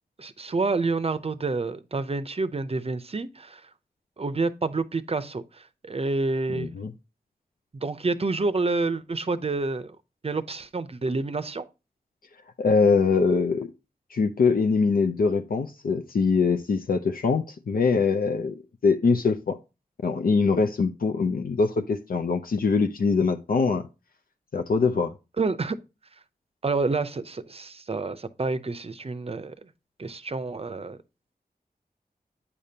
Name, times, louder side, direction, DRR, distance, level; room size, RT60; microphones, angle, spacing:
voice 1, 0.2-3.6 4.2-6.7 7.7-9.9 10.2-11.7 25.4-25.8 26.6-29.7 30.0-31.0, right 3 dB, 40° right, 0.6 m, -28 dB
voice 2, 6.5-6.9 12.6-13.7 14.1-19.6 20.0-23.9 24.5-25.1, left 4 dB, 70° left, 0.5 m, -23 dB
8.4 x 5.1 x 2.7 m
wide cardioid pair, 60°, 16 cm